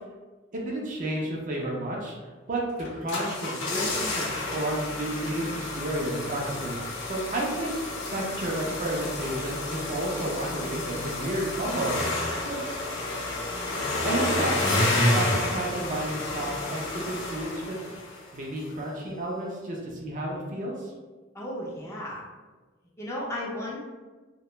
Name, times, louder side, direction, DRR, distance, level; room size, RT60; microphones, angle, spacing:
voice 1, 0.5-2.1 2.5-7.7 8.1-12.6 14.0-17.8 18.3-20.9, right 1 dB, 40° right, -2 dB, 0.5 m, -31 dB
sound 1, 2.8-18.3 18.6-18.7, left 2 dB, 75° left, 0.6 m, -30 dB
voice 2, 21.3-22.2 23.0-23.8, left 1 dB, 15° left, -5 dB, 0.5 m, -34 dB
2.3 x 2.1 x 2.9 m, 1.3 s
head